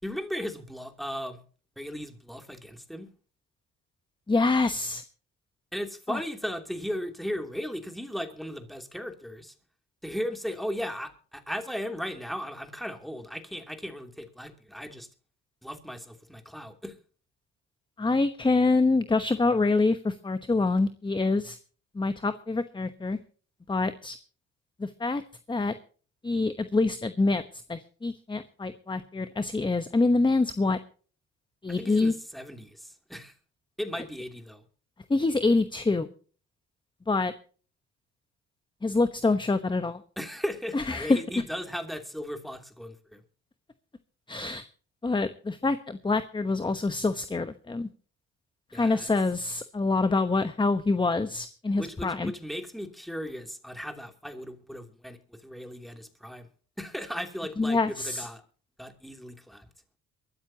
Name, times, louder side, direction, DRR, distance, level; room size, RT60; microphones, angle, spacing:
voice 1, 0.0-1.4 1.8-3.1 5.7-9.5 10.0-15.1 15.6-16.9 31.8-33.3 33.8-34.6 40.2-43.2 48.7-49.1 51.8-56.5 56.8-58.4 58.8-59.7, equal, ahead, 5 dB, 2.9 m, -36 dB
voice 2, 4.3-5.0 6.1-6.2 18.0-21.6 21.9-23.2 23.7-24.2 24.8-25.2 25.5-25.7 26.2-30.8 31.6-32.1 34.0-34.1 35.1-36.1 37.1-37.3 38.8-40.0 40.7-41.2 44.3-44.7 45.0-47.9 48.7-52.3 57.6-58.3, left 3 dB, 15° left, 10 dB, 1.0 m, -26 dB
23.0 x 13.5 x 2.9 m, 0.40 s
cardioid pair, 90°, 30 cm